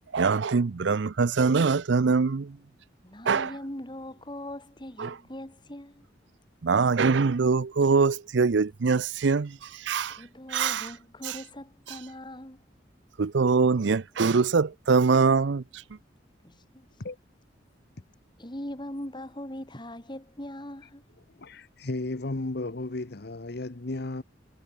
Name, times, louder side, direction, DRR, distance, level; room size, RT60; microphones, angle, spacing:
voice 1, 0.1-2.6 3.2-3.5 5.0-5.2 6.6-10.2 10.5-10.9 11.2-11.4 13.2-15.8, right 4 dB, 70° right, 0.5 m, -23 dB
voice 2, 3.0-6.0 10.1-12.6 16.4-16.9 18.4-21.0, left 1 dB, 25° left, 3.4 m, -40 dB
voice 3, 21.4-24.2, left 2 dB, 60° left, 1.0 m, -34 dB
head